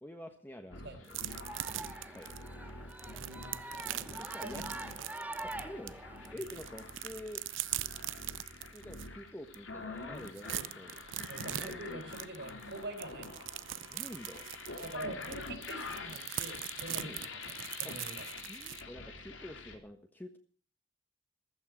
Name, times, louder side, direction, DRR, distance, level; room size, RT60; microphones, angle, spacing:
voice 1, 0.0-1.2 1.7-1.8 2.1-2.3 4.0-4.6 5.4-7.4 8.5-11.0 11.6-12.0 13.9-14.4 15.0-15.4 17.0-17.2 17.8-17.9 18.5-20.4, left 1 dB, 10° left, 4 dB, 1.3 m, -48 dB
sound 1, 0.7-19.8, left 3 dB, 85° left, 3.4 m, -46 dB
sound 2, 1.1-5.9 6.3-9.1 9.5-9.6 9.9-18.8, right 14 dB, 90° right, 0.6 m, -41 dB
sound 3, 1.3-6.3, right 1 dB, 10° right, 2.7 m, -45 dB
voice 2, 3.2-3.7 4.1-4.8 6.3-6.4 11.3-13.4 14.8-18.3, right 2 dB, 65° right, 8 dB, 4.1 m, -45 dB
15.0 x 14.5 x 6.1 m, 0.43 s
head